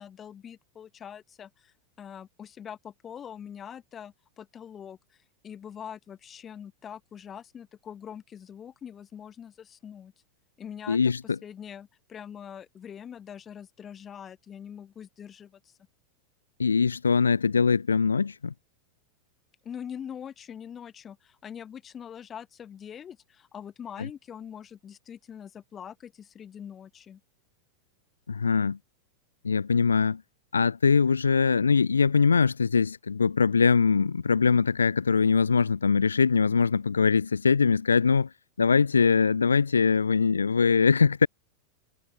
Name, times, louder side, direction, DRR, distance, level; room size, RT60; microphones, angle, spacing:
voice 1, 0.0-10.1 10.6-11.1 11.4-15.7 19.6-27.2, left 8 dB, 25° left, 3.3 m, -43 dB
voice 2, 10.9-11.4 16.6-18.5 24.0-24.1 28.3-28.8 29.4-30.2 30.5-38.3 38.6-41.3, left 5 dB, 75° left, 0.4 m, -22 dB
figure-of-eight pair, 90°, 0 cm